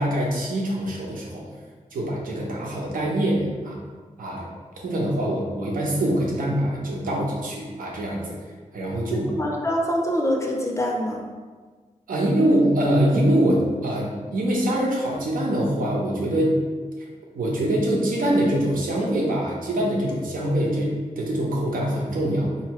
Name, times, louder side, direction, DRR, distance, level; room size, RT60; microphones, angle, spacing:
voice 1, 0.0-1.4 1.9-3.8 4.2-4.5 4.8-8.4 8.7-9.3 12.1-16.6 17.3-22.5, right 1 dB, 85° right, -3 dB, 0.9 m, -24 dB
voice 2, 9.1-11.2, equal, 20° left, 0 dB, 0.5 m, -25 dB
4.4 x 2.8 x 3.0 m, 1.5 s
wide cardioid pair, 155°, 14 cm